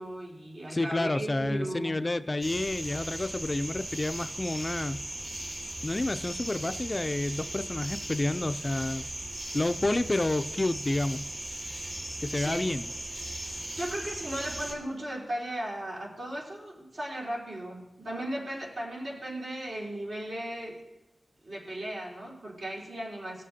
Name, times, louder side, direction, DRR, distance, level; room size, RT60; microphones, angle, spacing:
voice 1, 0.0-2.0 12.3-12.6 13.4-20.8 21.4-23.4, right 1 dB, 65° right, -5 dB, 3.8 m, -36 dB
voice 2, 0.7-5.0 5.8-9.1 9.5-11.2 12.2-12.9, left 2 dB, 30° left, 11 dB, 0.4 m, -29 dB
sound 1, 2.4-14.7, right 1 dB, 45° right, 3.2 m, -38 dB
18.0 x 7.4 x 2.8 m, 1.0 s
wide cardioid pair, 75°, 0 cm